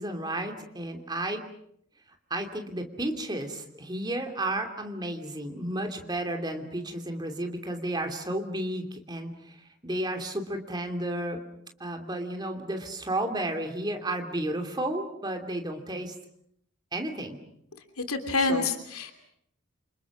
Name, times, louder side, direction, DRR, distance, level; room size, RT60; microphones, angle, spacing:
voice 1, 0.0-1.4 2.3-11.4 11.8-16.2 16.9-17.4 18.5-18.7, right 1 dB, 20° right, 4 dB, 2.9 m, -32 dB
voice 2, 18.0-19.1, left 3 dB, 90° left, 6 dB, 2.9 m, -27 dB
28.5 x 27.0 x 6.2 m, 0.70 s
head